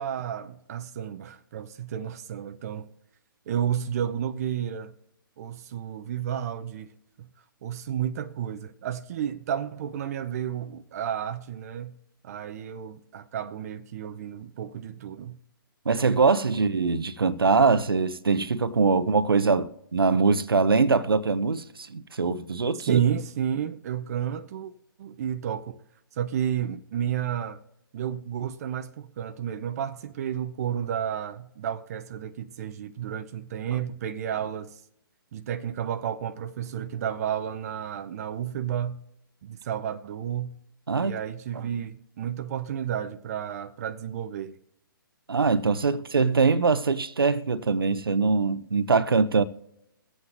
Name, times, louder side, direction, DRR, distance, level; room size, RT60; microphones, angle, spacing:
voice 1, 0.0-2.9 3.5-4.9 5.4-6.9 7.2-7.3 7.6-12.0 12.2-15.4 22.7-24.7 25.0-25.8 26.1-27.6 27.9-34.8 35.3-39.0 39.4-40.6 41.0-44.6 45.9-46.0, right 9 dB, 45° right, 0.6 m, -31 dB
voice 2, 15.9-23.0 40.9-41.1 45.3-49.4, right 4 dB, 80° right, 0.7 m, -23 dB
22.5 x 8.1 x 2.6 m
figure-of-eight pair, 135°, 12 cm